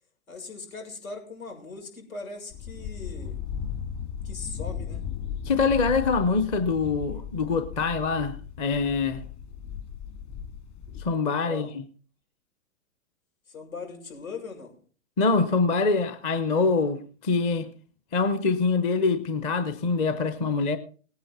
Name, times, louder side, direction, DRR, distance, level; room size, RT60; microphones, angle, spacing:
voice 1, 0.3-3.4 4.2-5.0 11.4-11.7 13.5-14.7, left 4 dB, 80° left, 7.0 m, -40 dB
sound 1, 2.5-11.1, left 7 dB, 30° left, 2.2 m, -36 dB
voice 2, 5.5-9.2 11.0-11.8 15.2-17.7 18.1-20.8, left 4 dB, 15° left, 0.6 m, -24 dB
18.0 x 9.5 x 4.2 m
hypercardioid pair, 135°, 41 cm